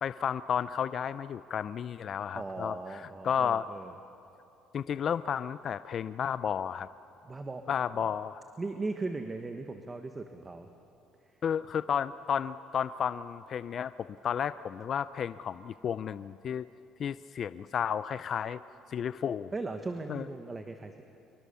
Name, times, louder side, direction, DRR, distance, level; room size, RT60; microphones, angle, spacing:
voice 1, 0.0-3.7 4.7-6.9 7.7-8.4 11.4-16.7 17.0-18.6 18.9-19.5 20.1-20.3, left 8 dB, 50° left, 14 dB, 0.5 m, -32 dB
voice 2, 2.3-4.0 7.2-7.7 8.6-10.7 19.5-21.0, right 3 dB, 20° right, 6 dB, 1.3 m, -38 dB
25.0 x 23.5 x 7.0 m, 2.8 s
cardioid pair, 105°, 0 cm